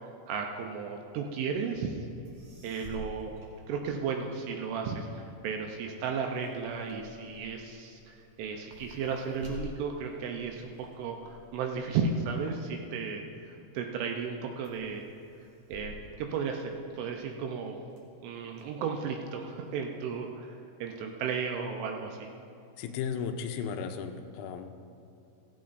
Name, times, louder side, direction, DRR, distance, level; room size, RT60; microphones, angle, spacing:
voice 1, 0.0-2.0 2.6-3.4 3.7-15.0 15.7-17.8 18.2-20.6 20.8-22.3, right 5 dB, 80° right, 2 dB, 2.9 m, -34 dB
sound 1, 2.2-4.4 4.8-13.5 14.0-14.4 14.6-17.1 17.6-18.6, left 2 dB, 45° right, 2.6 m, -50 dB
voice 2, 22.8-24.7, left 6 dB, 85° left, 6 dB, 3.3 m, -35 dB
15.5 x 15.0 x 2.6 m, 2.6 s
omnidirectional pair, 5.9 m